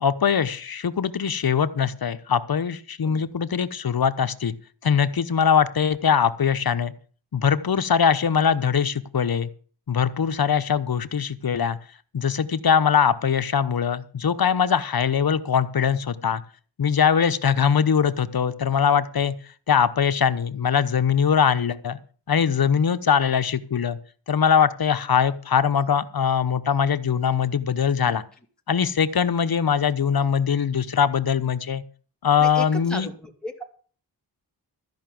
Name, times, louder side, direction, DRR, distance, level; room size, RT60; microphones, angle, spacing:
voice 1, 0.0-4.5 4.8-6.9 7.3-9.5 9.9-11.8 12.1-16.4 16.8-19.3 19.7-22.0 22.3-24.0 24.3-28.2 28.7-31.8 32.2-33.1, left 7 dB, 60° left, 11 dB, 1.0 m, -22 dB
voice 2, 32.4-33.6, equal, ahead, 1 dB, 2.9 m, -36 dB
13.5 x 5.8 x 9.2 m, 0.42 s
wide cardioid pair, 75°, 41 cm